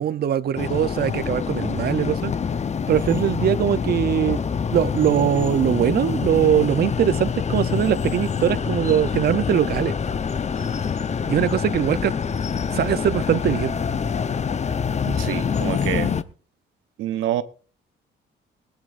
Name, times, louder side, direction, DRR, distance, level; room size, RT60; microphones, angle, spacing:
voice 1, 0.0-2.3 2.9-4.4 4.7-9.9 11.3-12.1 12.7-13.7, right 10 dB, 55° right, 0.6 m, -21 dB
sound 1, 0.6-16.2, left 6 dB, 35° left, 0.8 m, -26 dB
voice 2, 15.1-16.1 17.0-17.4, right 12 dB, 90° right, 0.9 m, -27 dB
21.0 x 16.0 x 2.5 m
cardioid pair, 90°, 20 cm